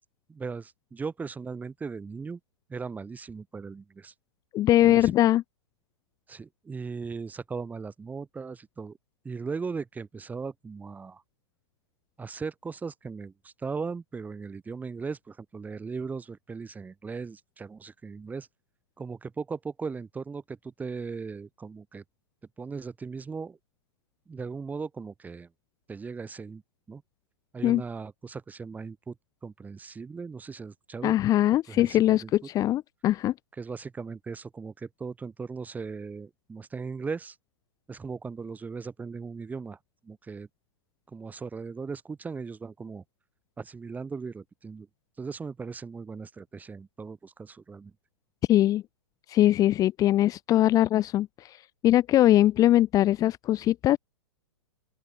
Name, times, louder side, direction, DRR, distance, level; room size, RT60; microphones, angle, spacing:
voice 1, 0.3-2.4 2.7-4.1 4.8-5.1 6.3-9.0 9.2-11.2 12.2-18.5 19.0-22.0 22.6-23.6 24.3-25.5 25.9-26.6 26.9-27.0 27.5-29.1 29.4-31.1 31.7-32.3 33.6-37.4 37.9-39.8 40.0-40.5 41.1-43.0 43.6-44.9 45.2-47.9, right 5 dB, 10° right, 5.0 m, -38 dB
voice 2, 4.5-5.4 27.6-27.8 31.0-33.3 48.5-48.8 49.3-54.0, left 13 dB, 25° left, 1.7 m, -22 dB
open air
figure-of-eight pair, 110°, 15 cm